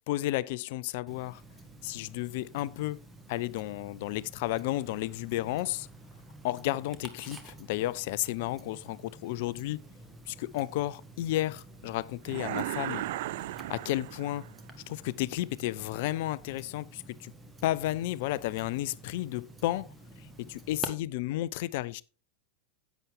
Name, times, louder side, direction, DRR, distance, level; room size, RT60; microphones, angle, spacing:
voice 1, 0.1-1.4 1.8-3.0 3.3-5.9 6.4-9.8 10.3-13.0 13.7-14.4 14.9-17.3 17.6-22.0, left 16 dB, 50° left, 0.4 m, -32 dB
Tick-tock, 1.1-20.9, right 2 dB, 10° right, 1.5 m, -49 dB
sound 1, 12.3-14.6, right 15 dB, 50° right, 0.4 m, -36 dB
10.5 x 8.2 x 3.5 m
figure-of-eight pair, 90°, 0 cm